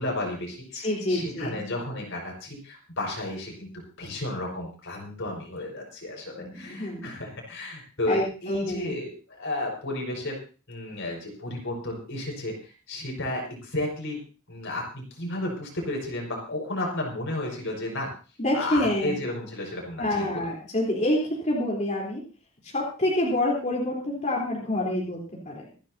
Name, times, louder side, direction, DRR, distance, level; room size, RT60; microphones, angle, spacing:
voice 1, 0.0-3.7 4.0-10.4 10.7-14.2 14.5-18.1 18.5-20.5, left 1 dB, 60° left, 0 dB, 5.4 m, -33 dB
voice 2, 0.7-1.6 6.4-7.1 8.1-8.9 18.4-19.2 20.0-22.2 22.6-25.7, left 1 dB, 35° left, -3 dB, 3.8 m, -27 dB
26.0 x 10.5 x 2.8 m, 0.36 s
head